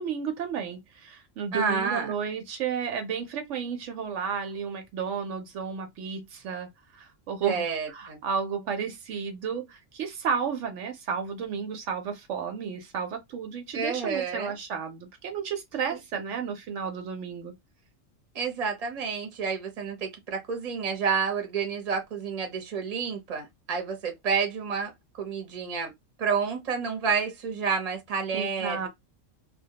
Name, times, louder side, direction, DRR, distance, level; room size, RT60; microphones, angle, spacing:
voice 1, 0.0-6.7 6.9-7.6 7.9-17.5 28.3-28.9, right 6 dB, 75° right, 0.9 m, -32 dB
voice 2, 1.5-2.1 7.4-8.2 13.7-14.5 18.3-25.9 26.2-28.9, right 5 dB, 35° right, 0.7 m, -29 dB
2.2 x 2.1 x 2.8 m
omnidirectional pair, 1.3 m